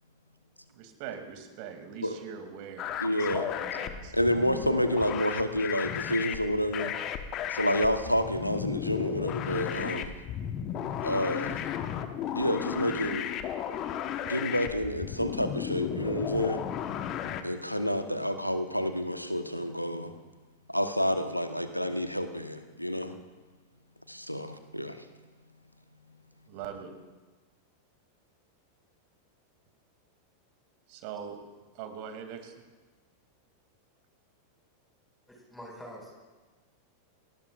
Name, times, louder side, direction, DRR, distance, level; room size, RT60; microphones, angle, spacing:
voice 1, 0.7-4.1 26.5-26.9 30.9-31.4 31.7-32.5, right 8 dB, 45° right, 5 dB, 2.7 m, -42 dB
sound 1, 2.8-17.4, left 9 dB, 35° left, 1.2 m, -34 dB
voice 2, 3.0-3.5 4.1-6.9 7.5-10.1 11.0-11.6 12.3-13.3 14.3-16.6 17.4-20.1 20.7-23.1 24.1-25.0, equal, 90° left, 8 dB, 1.2 m, -29 dB
voice 3, 35.3-36.1, equal, 5° left, -2 dB, 5.8 m, -45 dB
29.5 x 19.5 x 2.5 m, 1.3 s
figure-of-eight pair, 90°, 0 cm